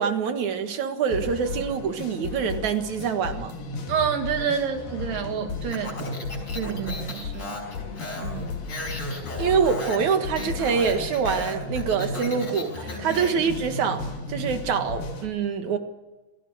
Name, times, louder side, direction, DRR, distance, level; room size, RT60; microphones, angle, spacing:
voice 1, 0.0-3.5 9.4-14.0 14.3-15.8, right 6 dB, 65° right, 7 dB, 3.0 m, -25 dB
sound 1, 1.1-15.3, left 3 dB, 80° left, 4.4 m, -34 dB
voice 2, 3.9-6.0 6.5-7.7 8.2-8.5 13.1-13.2, right 7 dB, 85° right, 5 dB, 4.1 m, -28 dB
Speech, 5.7-13.5, left 2 dB, 30° left, 5.5 m, -36 dB
27.0 x 17.0 x 7.9 m, 1.2 s
omnidirectional pair, 3.8 m